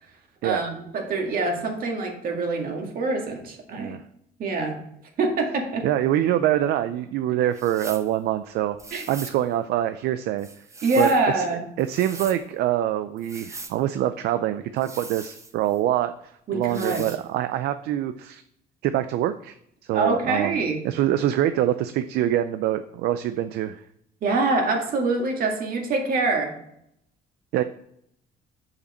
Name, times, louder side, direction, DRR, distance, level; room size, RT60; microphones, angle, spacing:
voice 1, 0.4-4.0 4.4-4.8 5.2-5.9 8.9-9.0 10.8-11.6 16.5-17.1 19.9-20.8 24.2-26.5, right 3 dB, 60° right, 2 dB, 2.0 m, -25 dB
voice 2, 5.8-8.8 9.1-10.5 11.0-11.4 11.8-16.1 16.5-18.4 18.8-19.5 19.9-20.6 20.8-23.8 27.5-27.6, right 12 dB, 75° right, 11 dB, 0.5 m, -25 dB
sound 1, 7.5-8.1 8.8-9.4 10.4-11.3 11.8-12.4 13.2-13.8 14.8-15.8 16.6-17.2, right 3 dB, 15° right, 0.8 m, -40 dB
6.8 x 5.7 x 4.2 m, 0.73 s
cardioid pair, 110°, 17 cm